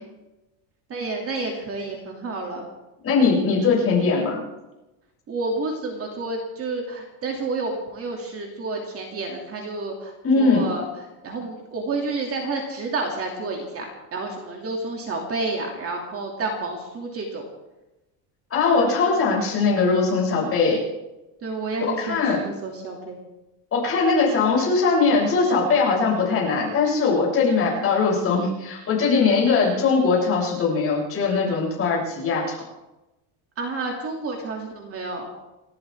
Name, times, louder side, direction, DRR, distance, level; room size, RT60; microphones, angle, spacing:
voice 1, 0.9-2.7 5.3-10.8 11.2-13.9 14.1-17.4 21.4-23.2 33.6-35.3, right 3 dB, 30° right, 1 dB, 2.7 m, -30 dB
voice 2, 3.0-4.4 10.2-10.7 18.5-20.8 22.0-22.4 23.7-32.6, left 4 dB, 30° left, -4 dB, 7.8 m, -20 dB
29.5 x 13.5 x 3.6 m, 0.99 s
cardioid pair, 160°, 44 cm